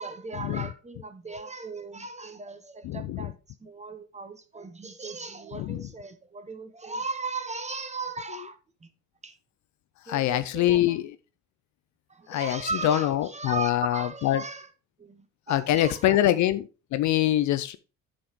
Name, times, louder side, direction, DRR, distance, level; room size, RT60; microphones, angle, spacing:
voice 1, 0.0-3.3 3.6-8.9 9.2-9.4 10.1-11.0 12.1-14.7 15.0-16.4, right 4 dB, 15° right, 1.2 m, -37 dB
voice 2, 2.8-3.3 5.5-5.8 10.1-11.1 12.3-14.4 15.5-16.6 16.9-17.8, left 13 dB, 45° left, 0.5 m, -24 dB
10.0 x 5.7 x 3.0 m
hypercardioid pair, 60°, 40 cm